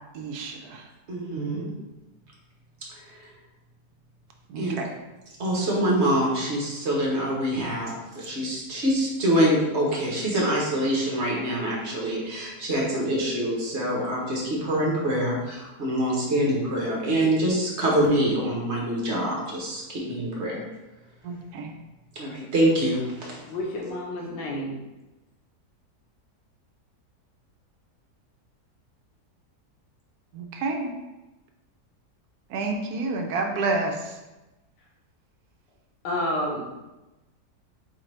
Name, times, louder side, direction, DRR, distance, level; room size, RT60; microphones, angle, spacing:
voice 1, 0.1-0.8 1.4-1.5 4.5-4.9 21.2-21.7 30.3-30.9 32.5-34.1, right 3 dB, 75° right, 3 dB, 1.0 m, -29 dB
voice 2, 1.1-1.7 3.0-3.3 4.6-4.8 5.4-20.6 22.1-23.4, right 1 dB, 45° right, -3 dB, 1.2 m, -25 dB
voice 3, 23.4-24.7 36.0-36.7, left 1 dB, 85° left, -2 dB, 1.6 m, -29 dB
4.3 x 3.8 x 3.2 m, 1.0 s
omnidirectional pair, 1.8 m